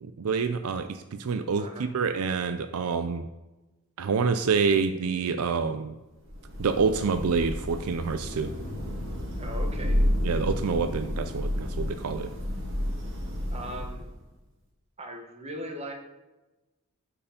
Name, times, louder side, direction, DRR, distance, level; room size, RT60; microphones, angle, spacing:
voice 1, 0.0-3.3 4.0-5.9 6.6-8.5 10.2-12.3, right 5 dB, 75° right, 9 dB, 0.5 m, -27 dB
Thunder / Rain, 6.2-14.2, equal, 60° right, 2.5 m, -31 dB
voice 2, 9.4-10.0 13.5-14.1 15.0-15.9, equal, 30° right, 2 dB, 1.3 m, -38 dB
8.6 x 4.8 x 5.0 m, 1.1 s
head